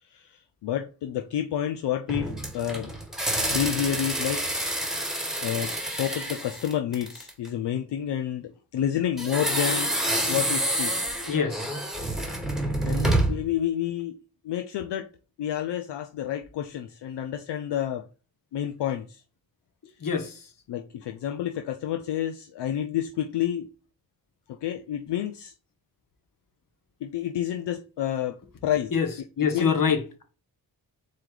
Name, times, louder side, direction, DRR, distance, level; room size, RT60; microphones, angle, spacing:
voice 1, 0.0-2.9 3.4-4.5 5.4-9.9 10.3-10.9 12.8-14.2 14.4-15.1 15.4-18.1 18.5-19.2 20.7-23.7 24.5-25.5 27.0-28.9 29.4-29.7, left 10 dB, 70° left, 0.5 m, -29 dB
sound 1, 2.1-7.5 9.2-13.5, right 1 dB, ahead, 1.4 m, -28 dB
voice 2, 11.3-11.7 20.0-20.4 28.9-29.1 29.4-30.2, left 6 dB, 50° left, 1.2 m, -25 dB
4.3 x 3.2 x 3.8 m
cardioid pair, 45°, 43 cm